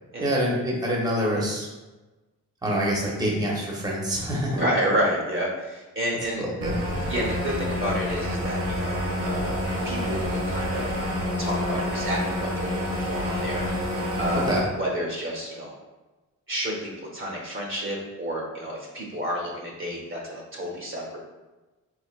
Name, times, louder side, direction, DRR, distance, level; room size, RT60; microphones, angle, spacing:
voice 1, 0.2-1.7 2.6-4.6 6.4-6.8 14.4-14.6, equal, 10° right, -3 dB, 0.8 m, -26 dB
voice 2, 4.5-6.5 7.1-9.5 9.8-10.9 11.4-15.7 16.5-21.2, equal, 40° right, -2 dB, 0.8 m, -30 dB
sound 1, 6.6-14.6, left 1 dB, 85° right, 1.3 m, -28 dB
3.2 x 3.2 x 2.4 m, 1.1 s
cardioid pair, 80°, 33 cm